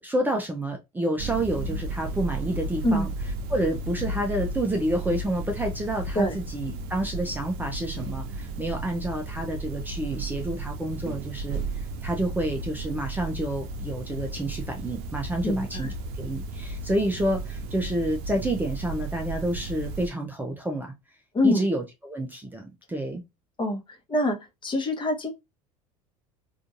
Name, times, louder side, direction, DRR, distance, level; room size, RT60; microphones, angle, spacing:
voice 1, 0.0-3.1 3.5-20.9 21.4-23.2, right 1 dB, 10° right, 0.6 m, -29 dB
sound 1, 1.2-20.1, right 2 dB, 60° right, 0.6 m, -34 dB
voice 2, 15.4-15.9 21.3-21.6 23.6-23.8 24.1-24.4 24.6-25.3, left 1 dB, 25° left, 1.1 m, -24 dB
3.7 x 2.6 x 2.5 m
hypercardioid pair, 70°, 19 cm